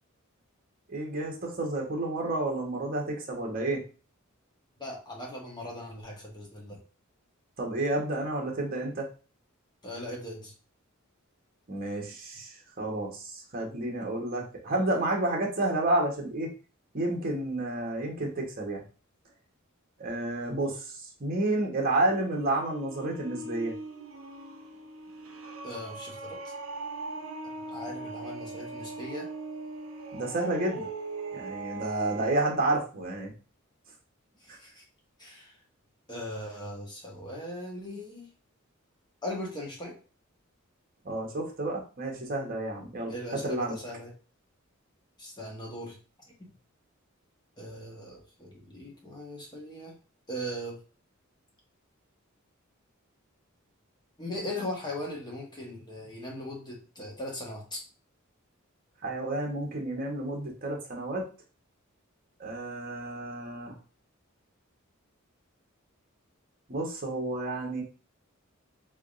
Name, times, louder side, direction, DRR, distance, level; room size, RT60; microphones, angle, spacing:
voice 1, 0.9-3.8 7.6-9.1 11.7-16.5 16.9-18.8 20.0-20.8 21.2-23.7 30.1-30.9 31.3-33.3 41.0-43.1 43.4-43.7 59.0-61.2 62.4-63.7 66.7-67.8, right 2 dB, 45° right, 0 dB, 1.0 m, -30 dB
voice 2, 4.8-6.8 9.8-10.5 25.6-26.4 27.7-29.3 34.4-34.8 35.2-35.5 36.1-38.3 39.2-39.9 43.1-44.1 45.2-46.0 46.4-46.5 47.6-50.0 50.3-50.8 54.2-57.8, left 1 dB, 20° left, -2 dB, 1.1 m, -39 dB
sound 1, 22.1-32.6, right 3 dB, 70° right, 0.7 m, -40 dB
3.7 x 3.5 x 2.5 m, 0.35 s
head